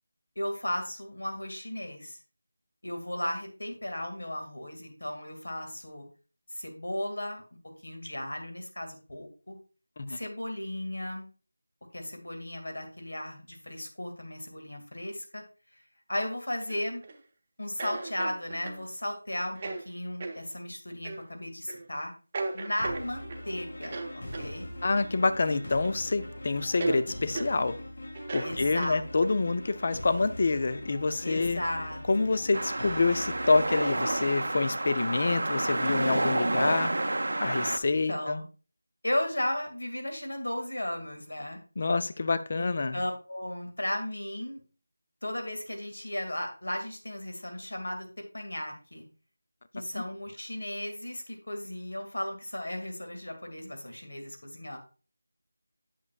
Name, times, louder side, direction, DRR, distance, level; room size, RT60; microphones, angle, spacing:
voice 1, 0.4-2.2 2.8-6.1 6.5-7.4 7.8-9.6 10.1-11.3 11.9-15.4 16.1-17.0 17.6-19.6 19.8-22.1 22.5-24.7 28.4-29.3 31.2-32.5 37.5-37.6 38.1-38.5 39.0-41.6 42.5-44.6 45.2-48.1 48.3-49.1 49.7-54.8, left 1 dB, 85° left, 2.2 m, -35 dB
sound 1, 16.6-17.2 17.8-18.8 19.5-19.8 20.2-20.4 21.0-21.2 21.7-21.9 22.3-23.4 23.8-24.5 25.4-26.0 26.2-26.3 26.8-27.0 27.3-27.5 28.1-29.3, right 3 dB, 20° right, 0.7 m, -36 dB
sound 2, 22.8-34.2, left 1 dB, 60° left, 2.8 m, -42 dB
voice 2, 24.8-27.8 28.3-31.6 32.1-36.9 37.4-38.4 41.8-43.0 49.9-50.0, left 3 dB, 35° left, 0.4 m, -27 dB
sound 3, 32.5-37.8, right 2 dB, 70° right, 0.6 m, -29 dB
8.5 x 6.8 x 2.4 m
figure-of-eight pair, 175°, 0 cm